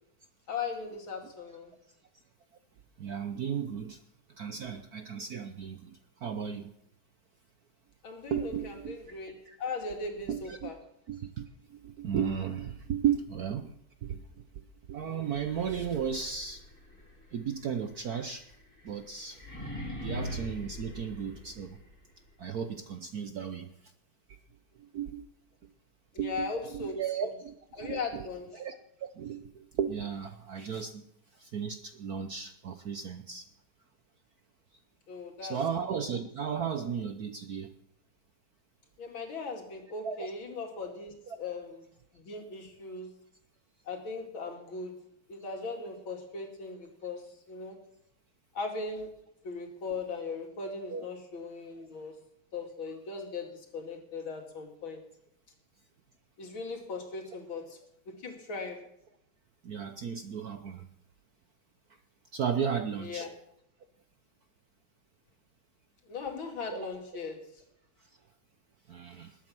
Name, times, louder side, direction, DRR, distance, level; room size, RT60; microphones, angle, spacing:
voice 1, 0.5-1.7 8.0-9.3 9.6-10.8 26.1-27.3 27.7-28.6 35.1-35.6 39.0-41.8 42.1-43.1 43.9-44.9 45.3-47.8 48.5-49.1 49.4-52.2 52.5-55.0 56.4-57.8 58.1-58.9 63.0-63.3 66.1-67.5, left 4 dB, 65° left, 3 dB, 3.1 m, -38 dB
voice 2, 3.0-4.0 4.4-6.7 8.3-9.0 9.5-9.6 10.3-10.7 11.1-13.7 14.0-14.2 14.9-16.6 17.3-18.4 18.8-19.4 19.9-21.8 22.4-23.7 24.9-25.2 26.2-28.2 28.5-28.7 29.0-31.0 31.4-33.4 35.4-37.7 40.0-40.3 50.9-51.0 59.6-60.9 62.3-63.3 66.7-66.9 68.9-69.4, right 7 dB, 60° right, 8 dB, 1.0 m, -35 dB
sound 1, 15.2-22.1, left 1 dB, 5° left, 7.0 m, -43 dB
20.0 x 8.7 x 6.0 m, 0.74 s
omnidirectional pair, 2.4 m